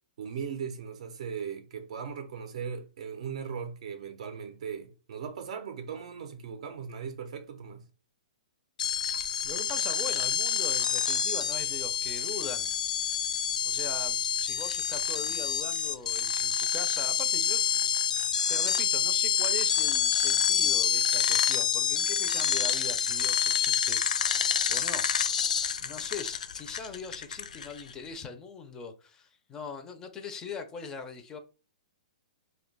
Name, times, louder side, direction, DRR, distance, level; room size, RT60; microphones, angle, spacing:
voice 1, 0.2-7.9, right 7 dB, 60° right, 0.5 m, -38 dB
sound 1, 8.8-27.9, left 8 dB, 85° left, 0.4 m, -28 dB
voice 2, 9.4-12.7 13.6-17.9 18.5-24.0 24.7-25.1 25.8-31.4, left 5 dB, 15° left, 0.4 m, -41 dB
2.7 x 2.2 x 3.9 m
hypercardioid pair, 150°, 4 cm